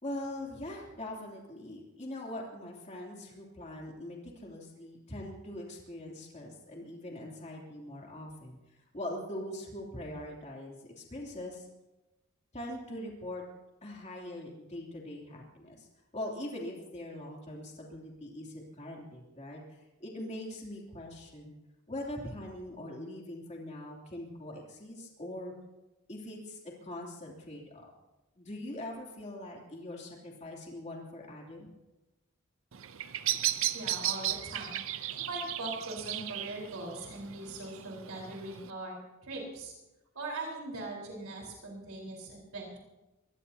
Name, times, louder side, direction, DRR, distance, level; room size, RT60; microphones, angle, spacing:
voice 1, 0.0-8.6 8.9-11.7 12.5-13.4 13.8-15.9 16.1-21.6 21.9-25.5 26.1-27.9 28.4-31.7, left 1 dB, 30° left, -1 dB, 3.0 m, -42 dB
Bird vocalization bird call bird song, 32.7-38.7, right 12 dB, 65° right, 0.6 m, -35 dB
voice 2, 33.7-39.7 40.1-42.8, right 2 dB, 85° right, -2 dB, 4.3 m, -41 dB
24.0 x 19.0 x 2.8 m, 1.0 s
head